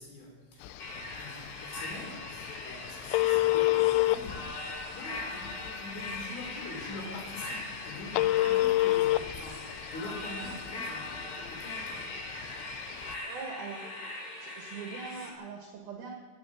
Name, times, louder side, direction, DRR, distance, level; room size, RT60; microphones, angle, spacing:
voice 1, 0.0-4.6 4.9-12.1 12.9-13.2, left 2 dB, 65° left, -1 dB, 5.5 m, -44 dB
Telephone, 0.6-13.2, left 16 dB, 85° left, 2.7 m, -31 dB
sound 1, 0.8-15.3, left 2 dB, 35° left, 3.1 m, -41 dB
voice 2, 13.2-13.9 14.4-16.1, right 5 dB, 60° right, 1 dB, 2.8 m, -41 dB
18.0 x 9.7 x 7.3 m, 1.5 s
omnidirectional pair, 6.0 m